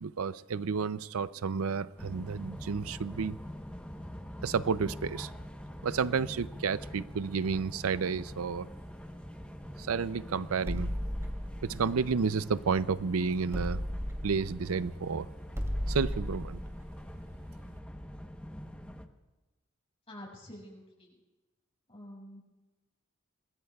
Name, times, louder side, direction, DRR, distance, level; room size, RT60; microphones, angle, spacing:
voice 1, 0.0-3.4 4.4-5.3 5.8-8.7 9.8-10.9 11.7-13.8 14.2-15.3 15.9-16.6, right 5 dB, 90° right, 16 dB, 0.5 m, -31 dB
sound 1, 2.0-19.1, equal, 5° left, 1.0 m, -45 dB
sound 2, 10.7-13.0 13.5-18.2, equal, 15° right, 2.7 m, -36 dB
voice 2, 20.1-21.2 21.9-22.4, left 1 dB, 30° left, -3 dB, 5.8 m, -48 dB
26.5 x 20.0 x 2.4 m, 1.1 s
head